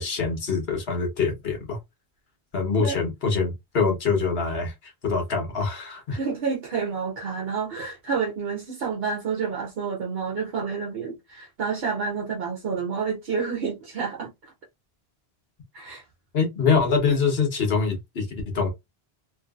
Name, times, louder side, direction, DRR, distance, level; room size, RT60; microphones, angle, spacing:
voice 1, 0.0-1.8 2.5-6.2 16.3-18.7, left 5 dB, 75° left, 1.3 m, -24 dB
voice 2, 6.1-14.5 15.7-16.0, right 5 dB, 70° right, 1.0 m, -29 dB
3.1 x 2.7 x 2.3 m
omnidirectional pair, 1.0 m